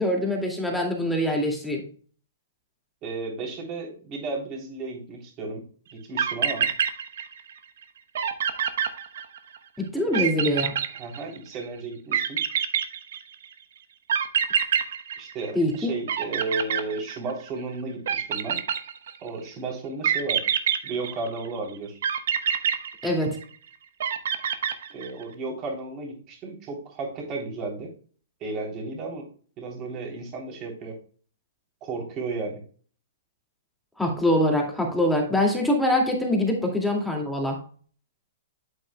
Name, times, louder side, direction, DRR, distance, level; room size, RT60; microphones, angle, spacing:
voice 1, 0.0-1.9 9.8-10.8 15.5-15.9 23.0-23.4 34.0-37.6, left 1 dB, 5° left, 0 dB, 2.2 m, -24 dB
voice 2, 3.0-5.6 5.9-6.7 10.1-10.2 11.0-12.4 15.2-18.6 19.2-20.5 20.8-22.0 24.9-27.9 28.4-29.3 29.6-31.0 31.8-32.6, right 3 dB, 30° right, 0 dB, 3.3 m, -33 dB
sound 1, 5.9-6.0 6.2-7.5 7.8-7.9 8.2-9.6 10.1-11.6 12.1-13.5 14.1-15.8 16.1-17.5 18.1-19.3 20.0-21.5 22.0-23.6 24.0-25.2, right 8 dB, 65° right, 0.9 m, -26 dB
8.6 x 7.8 x 2.2 m, 0.43 s
hypercardioid pair, 135°, 0 cm